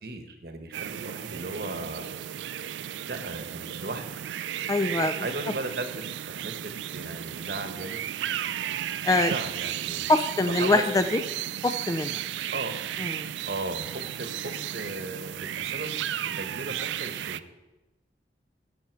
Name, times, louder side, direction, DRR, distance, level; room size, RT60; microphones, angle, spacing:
voice 1, 0.0-2.1 3.1-4.2 5.2-8.0 9.1-10.1 10.4-10.8 12.5-12.7 13.5-15.9 16.2-17.5, right 2 dB, 60° right, 7 dB, 1.1 m, -36 dB
sound 1, 0.7-17.4, right 11 dB, 90° right, 0.3 m, -34 dB
voice 2, 4.7-5.1 9.0-9.3 10.1-11.2 11.6-12.2 13.0-13.3, left 2 dB, 20° left, 9 dB, 0.3 m, -24 dB
15.5 x 5.9 x 4.5 m, 1.0 s
head